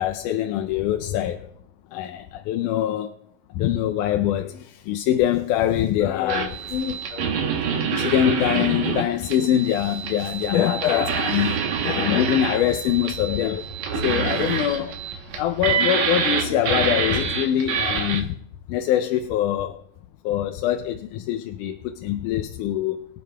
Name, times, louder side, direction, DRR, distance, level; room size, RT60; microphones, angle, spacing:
voice 1, 0.0-1.5 1.9-3.1 3.5-13.7 13.9-15.0 15.3-18.4 18.7-19.8 20.2-23.1, left 11 dB, 90° left, 2.1 m, -24 dB
sound 1, 6.3-18.2, right 7 dB, 70° right, 2.3 m, -27 dB
23.0 x 9.7 x 2.2 m
omnidirectional pair, 3.5 m